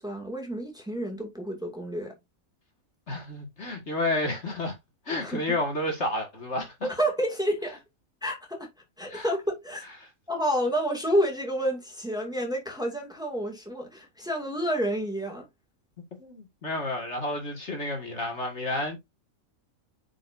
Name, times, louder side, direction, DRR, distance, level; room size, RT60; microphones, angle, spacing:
voice 1, 0.0-2.1 5.1-5.4 6.8-7.8 8.2-8.7 9.0-9.8 10.3-15.5, equal, 5° right, 2.3 m, -29 dB
voice 2, 3.1-4.8 5.1-6.9 9.1-9.3 16.2-19.0, left 2 dB, 50° left, 2.4 m, -30 dB
9.2 x 5.1 x 2.7 m
omnidirectional pair, 1.5 m